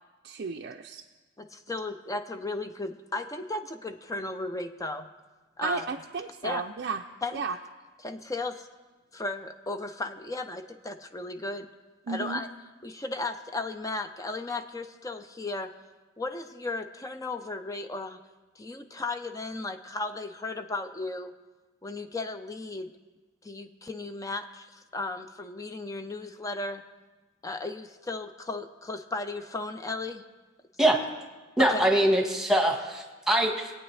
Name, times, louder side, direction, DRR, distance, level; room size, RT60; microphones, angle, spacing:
voice 1, 0.2-1.0 5.6-7.0 7.3-7.6 12.1-12.4, right 5 dB, 55° right, 3 dB, 0.5 m, -33 dB
voice 2, 1.4-5.1 5.6-5.9 6.4-6.6 7.2-7.4 8.0-8.7 9.1-11.7 12.1-12.5 12.8-15.7 16.2-18.2 18.6-21.3 21.8-22.9 23.4-26.8 27.4-30.2 31.6-31.9, left 2 dB, 15° left, 8 dB, 0.5 m, -35 dB
voice 3, 31.6-33.7, right 1 dB, ahead, 1 dB, 1.4 m, -23 dB
22.0 x 8.8 x 3.3 m, 1.2 s
head